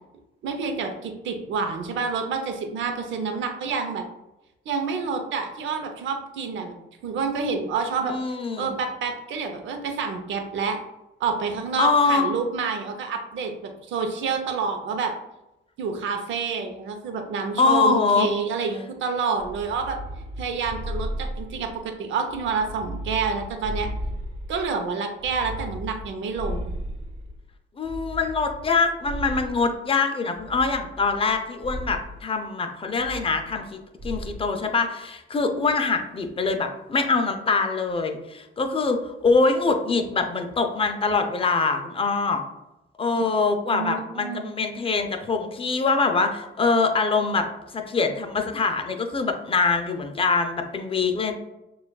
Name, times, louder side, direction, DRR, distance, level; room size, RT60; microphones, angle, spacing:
voice 1, 0.4-4.0 4.7-6.7 7.0-8.1 8.6-10.8 11.2-15.1 15.8-20.0 20.4-23.9 24.5-26.7 43.1-43.2 43.7-44.5, right 5 dB, 75° right, 5 dB, 0.7 m, -28 dB
voice 2, 8.0-8.7 11.8-12.2 17.6-18.3 27.8-33.8 34.0-42.4 43.0-47.5 47.7-51.3, left 4 dB, 30° left, 5 dB, 0.5 m, -24 dB
sound 1, 19.4-21.8 22.3-24.7 25.2-27.4 27.8-29.7 30.4-31.3 31.6-32.1 33.0-33.7 34.0-34.5, equal, 35° right, 1.1 m, -35 dB
6.5 x 2.4 x 2.3 m, 0.93 s
cardioid pair, 90°, 20 cm